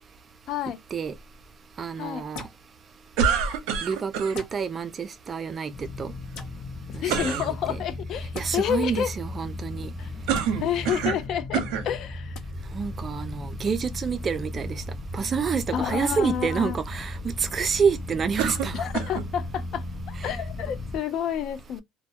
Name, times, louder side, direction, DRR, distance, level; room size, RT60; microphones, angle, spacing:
voice 1, 0.5-0.8 2.0-2.3 6.9-9.1 10.0-10.1 10.6-12.4 15.7-16.8 18.7-21.8, left 9 dB, 55° left, 0.4 m, -29 dB
voice 2, 1.8-2.4 3.8-6.1 6.9-7.8 8.4-9.9 12.7-14.8 15.1-18.9 20.2-20.3, right 6 dB, 35° right, 0.4 m, -28 dB
sound 1, 2.3-2.6 4.3-4.6 6.3-6.5 8.3-8.5 10.3-10.5 12.3-12.4, left 4 dB, 75° left, 0.8 m, -39 dB
sound 2, 3.2-4.4 7.1-7.5 10.3-11.3 11.5-11.9 12.7-12.8 18.4-19.3, right 7 dB, 80° right, 0.6 m, -26 dB
sound 3, 5.7-21.0, left 1 dB, 30° left, 0.8 m, -36 dB
2.2 x 2.1 x 2.7 m
cardioid pair, 115°, 0 cm